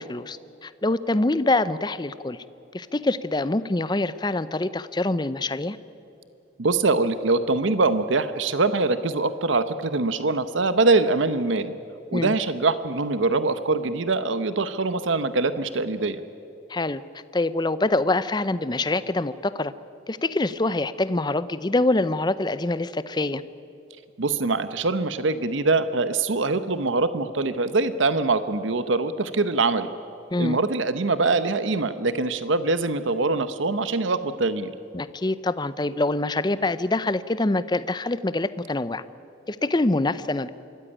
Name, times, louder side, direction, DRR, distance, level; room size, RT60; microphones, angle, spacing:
voice 1, 0.0-2.4 2.7-5.8 12.1-12.3 16.7-17.0 17.3-19.7 20.1-23.4 30.3-30.6 34.9-39.0 39.5-40.5, left 2 dB, 20° left, 15 dB, 0.6 m, -25 dB
voice 2, 6.6-11.8 12.1-16.2 24.2-29.9 30.4-34.7, right 3 dB, 80° right, 12 dB, 0.9 m, -23 dB
24.5 x 14.0 x 10.0 m, 2.8 s
head